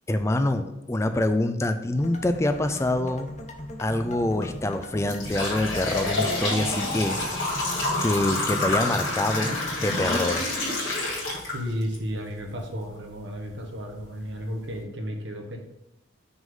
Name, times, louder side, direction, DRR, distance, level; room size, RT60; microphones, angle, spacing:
voice 1, 0.1-3.3 3.8-7.2 8.0-10.5, left 1 dB, 15° left, 8 dB, 0.3 m, -26 dB
sound 1, 1.9-9.9, left 1 dB, 35° left, 0.7 m, -39 dB
sound 2, 4.1-4.3 4.8-12.0 12.4-12.5 13.4-13.5 14.0-14.1 14.5-14.7, left 2 dB, 80° left, 2.2 m, -28 dB
voice 2, 11.5-15.6, equal, 65° right, 1 dB, 1.1 m, -33 dB
6.0 x 3.8 x 5.4 m, 0.91 s
head